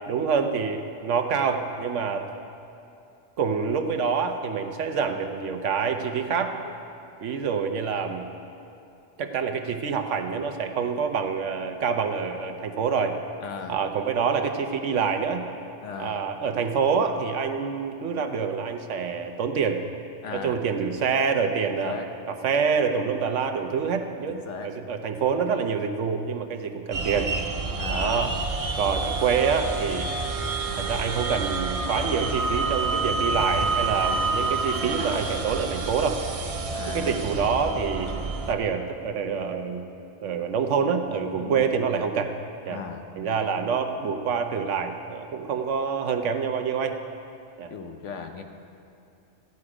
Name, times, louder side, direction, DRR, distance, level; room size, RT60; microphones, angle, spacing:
voice 1, 0.1-2.3 3.4-6.6 7.2-8.3 9.2-13.2 13.7-15.4 16.0-19.8 20.3-22.0 22.3-27.3 27.9-28.3 28.8-30.1 30.8-36.2 36.9-38.2 38.5-39.8 40.2-42.4 42.6-42.8 43.2-47.0 47.6-47.7, right 6 dB, 75° right, 6 dB, 1.1 m, -26 dB
voice 2, 13.4-13.8 15.8-16.2 20.2-20.6 21.7-22.1 24.3-24.7 27.8-28.2 36.7-37.3 41.3-41.7 42.7-43.0 47.7-48.4, left 6 dB, 75° left, 5 dB, 1.2 m, -37 dB
sound 1, 26.9-38.5, right 3 dB, 40° right, 0.6 m, -28 dB
13.5 x 9.5 x 4.9 m, 2.6 s
omnidirectional pair, 1.3 m